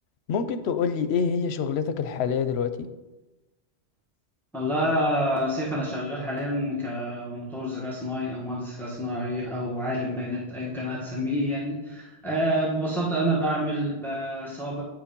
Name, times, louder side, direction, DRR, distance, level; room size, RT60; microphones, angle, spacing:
voice 1, 0.3-2.9, left 6 dB, 85° left, 10 dB, 0.9 m, -26 dB
voice 2, 4.5-14.8, equal, ahead, -5 dB, 1.4 m, -28 dB
9.2 x 4.9 x 5.3 m, 1.1 s
omnidirectional pair, 1.1 m